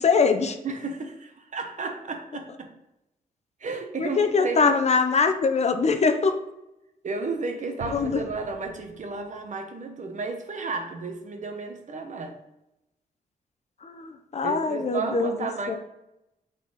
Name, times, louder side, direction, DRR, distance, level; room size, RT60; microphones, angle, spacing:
voice 1, 0.0-0.6 4.0-6.3 7.9-8.2 13.8-15.8, left 4 dB, 45° left, 8 dB, 0.8 m, -23 dB
voice 2, 0.6-2.7 3.6-4.7 7.0-12.4 14.4-15.8, right 4 dB, 50° right, 5 dB, 1.2 m, -33 dB
Explosion, 7.8-9.4, right 4 dB, 85° right, 1.3 m, -43 dB
8.3 x 4.3 x 4.1 m, 0.88 s
cardioid pair, 90°, 16 cm